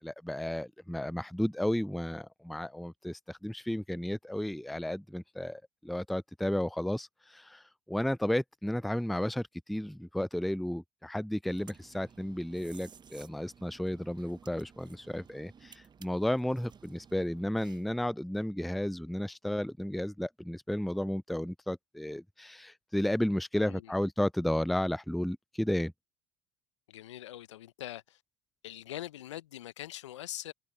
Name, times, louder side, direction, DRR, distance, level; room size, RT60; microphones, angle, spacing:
voice 1, 0.0-25.9, left 1 dB, ahead, 0.4 m, -33 dB
sound 1, 11.5-18.0, right 7 dB, 30° right, 0.9 m, -56 dB
voice 2, 23.6-23.9 26.9-28.2 28.6-30.5, left 13 dB, 80° left, 0.9 m, -43 dB
hypercardioid pair, 65°, 15 cm